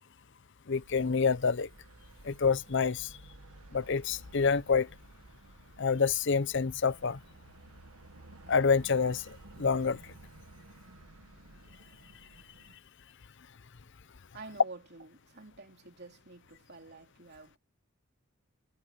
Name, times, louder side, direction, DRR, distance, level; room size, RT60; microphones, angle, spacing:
voice 1, 0.7-1.7 2.2-3.1 3.7-4.9 5.8-7.2 8.5-10.1, left 5 dB, 55° left, 0.7 m, -27 dB
sound 1, 0.7-12.8, right 2 dB, 90° right, 1.4 m, -54 dB
voice 2, 14.3-17.6, right 3 dB, 50° right, 3.2 m, -49 dB
head